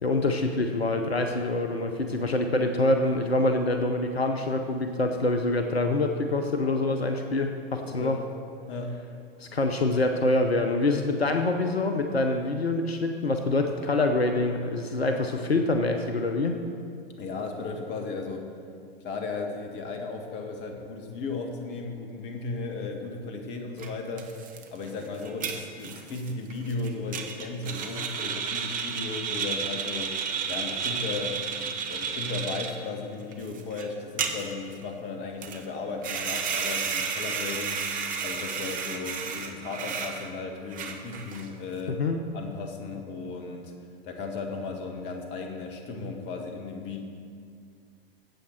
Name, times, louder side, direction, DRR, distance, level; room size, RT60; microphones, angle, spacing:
voice 1, 0.0-8.2 9.4-16.6 42.0-42.2, left 2 dB, 85° left, 5 dB, 0.9 m, -25 dB
voice 2, 7.8-8.2 8.7-8.9 17.2-18.5 19.0-24.3 24.7-30.2 30.5-31.4 31.9-37.8 38.2-42.0 42.3-43.7 44.0-47.0, left 3 dB, 35° left, 3 dB, 1.7 m, -35 dB
sound 1, 23.8-23.9 24.2-32.7 33.2-33.9 34.2-34.7 35.4-35.6 36.0-40.3 40.7-41.5, right 6 dB, 25° right, 1.1 m, -32 dB
14.5 x 8.4 x 4.5 m, 2.3 s
figure-of-eight pair, 95°, 30 cm